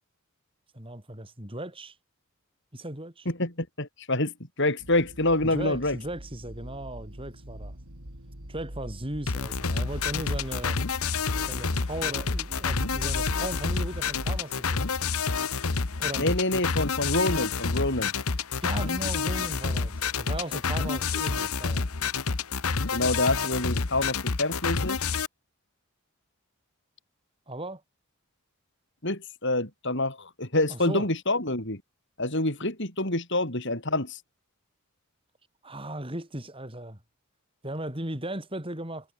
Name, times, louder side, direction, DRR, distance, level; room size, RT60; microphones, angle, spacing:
voice 1, 0.7-2.0 2.7-3.3 5.4-7.7 8.5-10.8 11.5-15.0 16.0-16.3 18.6-21.9 27.5-27.8 30.7-31.1 35.6-37.0 37.6-39.1, right 1 dB, 25° right, 4.7 m, -37 dB
voice 2, 3.2-6.0 16.2-18.1 22.9-25.0 29.0-31.8 32.2-34.2, left 2 dB, 55° left, 6.7 m, -27 dB
sound 1, 4.8-14.4, equal, 80° right, 5.3 m, -41 dB
sound 2, 9.3-25.3, left 5 dB, 75° left, 1.2 m, -29 dB
head